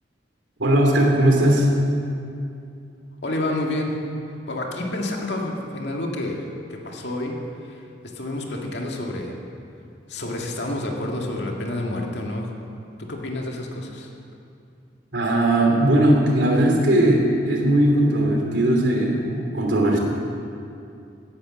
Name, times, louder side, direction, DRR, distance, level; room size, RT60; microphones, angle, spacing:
voice 1, 0.6-1.7 15.1-20.0, right 1 dB, 75° right, 1 dB, 2.9 m, -18 dB
voice 2, 3.2-4.0 4.5-6.4 6.7-7.3 7.6-7.8 8.1-9.4 10.1-12.5 13.0-14.1, left 1 dB, 65° left, 0 dB, 2.1 m, -29 dB
17.0 x 10.5 x 6.4 m, 2.5 s
head